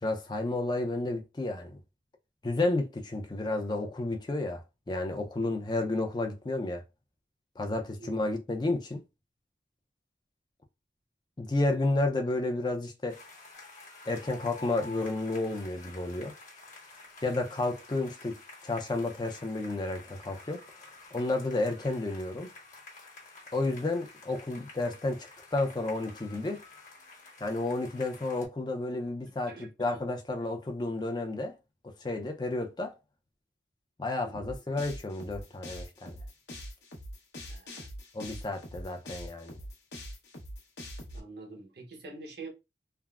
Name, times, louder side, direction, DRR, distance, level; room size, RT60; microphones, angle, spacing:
voice 1, 0.0-1.8 2.4-4.6 4.9-6.8 7.6-9.0 11.4-13.2 14.1-16.3 17.2-18.3 18.6-20.6 21.1-22.5 23.5-26.6 27.4-31.6 32.0-32.9 34.0-36.2 38.1-39.6, left 2 dB, 25° left, 0.4 m, -31 dB
sound 1, 13.1-28.5, left 3 dB, 45° left, 1.1 m, -50 dB
voice 2, 29.5-30.0 34.2-34.5 37.5-37.9 41.1-42.5, right 3 dB, 65° right, 0.8 m, -46 dB
sound 2, 34.3-41.2, equal, 70° left, 0.8 m, -43 dB
3.5 x 2.0 x 2.3 m
head